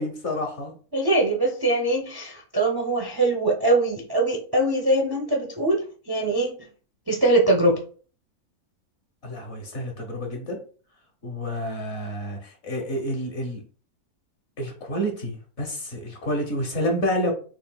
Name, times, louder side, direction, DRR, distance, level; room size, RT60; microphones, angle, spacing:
voice 1, 0.0-0.7 9.2-10.6 11.2-13.6 14.6-17.3, equal, 50° left, 1 dB, 1.2 m, -29 dB
voice 2, 0.9-5.8 6.1-6.6 7.1-7.8, right 2 dB, 35° right, 0 dB, 0.3 m, -22 dB
6.4 x 2.6 x 2.2 m, 0.41 s
omnidirectional pair, 1.6 m